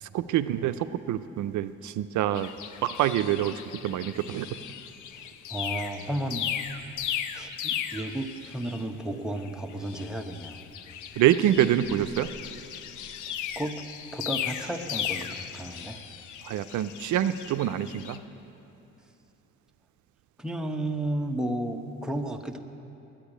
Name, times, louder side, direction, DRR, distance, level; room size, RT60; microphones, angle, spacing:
voice 1, 0.0-2.5 2.8-4.5 11.2-12.3 16.4-18.2, right 12 dB, 75° right, 10 dB, 0.5 m, -26 dB
sound 1, 2.3-9.0 9.4-18.2, left 9 dB, 80° left, 0.7 m, -37 dB
voice 2, 5.2-6.5 7.3-10.6 13.3-13.8 14.1-16.0 20.4-22.6, right 1 dB, ahead, 3 dB, 0.9 m, -33 dB
10.0 x 8.9 x 9.9 m, 2.8 s
cardioid pair, 90°, 30 cm